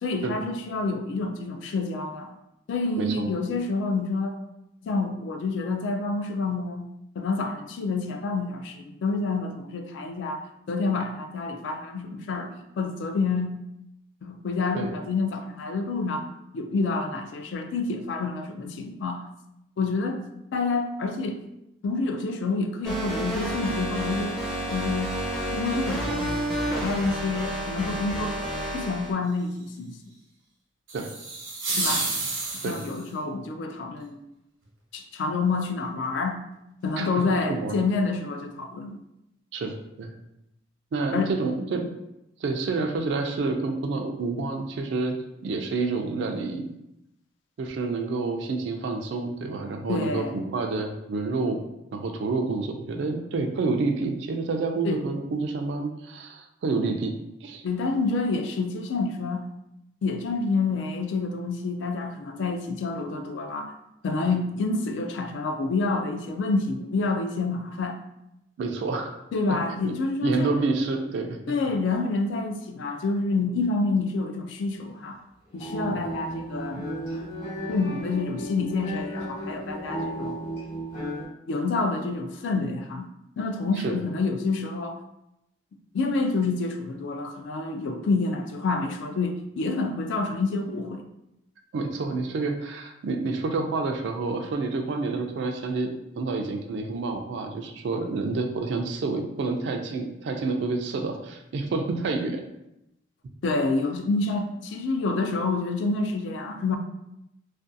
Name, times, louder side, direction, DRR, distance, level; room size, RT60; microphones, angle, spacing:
voice 1, 0.0-2.3 2.7-4.4 4.8-6.9 7.2-13.5 14.2-16.3 16.5-19.2 19.8-20.2 20.5-21.4 21.8-24.4 24.7-25.1 25.5-28.4 28.7-30.0 31.7-32.1 32.5-34.2 34.9-36.4 36.8-39.0 41.1-41.3 49.9-50.4 54.8-55.0 57.6-59.4 60.0-63.7 64.0-68.0 69.3-70.6 71.5-75.2 75.5-76.9 77.7-80.4 81.5-83.1 83.4-85.0 85.9-91.0 103.4-106.8, left 3 dB, 65° left, 5 dB, 0.3 m, -28 dB
voice 2, 3.0-3.3 14.7-14.9 30.9-31.1 32.6-32.8 37.0-37.8 39.5-40.1 40.9-41.9 42.4-45.2 45.4-46.7 47.6-51.6 51.9-57.6 68.6-69.2 69.5-69.6 69.8-69.9 70.2-71.4 75.9-76.0 83.8-84.0 91.7-102.4, right 3 dB, 60° right, 4 dB, 0.3 m, -28 dB
sound 1, 22.8-29.1, right 1 dB, 5° left, 0.5 m, -30 dB
sound 2, 30.9-33.1, right 3 dB, 90° right, 0.8 m, -30 dB
sound 3, 75.5-81.3, equal, 40° left, 1.0 m, -34 dB
2.4 x 2.3 x 2.5 m, 0.86 s
head